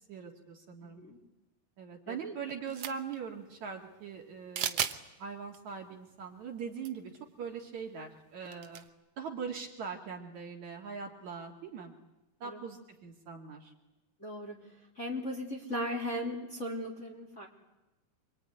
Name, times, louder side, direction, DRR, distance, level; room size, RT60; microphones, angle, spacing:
voice 1, 0.1-1.0 1.8-4.8 5.2-7.1 7.4-8.8 9.2-11.9 12.4-13.7, right 6 dB, 50° right, 1 dB, 3.1 m, -41 dB
voice 2, 0.8-1.2 2.1-2.3 12.4-12.6 14.2-14.7 14.9-17.5, equal, 20° left, -1 dB, 3.2 m, -37 dB
sound 1, 2.7-3.2 4.5-5.0 5.5-5.6 6.8-6.9 7.1-7.2 8.5-8.9, right 9 dB, 90° right, 1.2 m, -34 dB
26.5 x 22.5 x 9.8 m, 1.0 s
omnidirectional pair, 4.5 m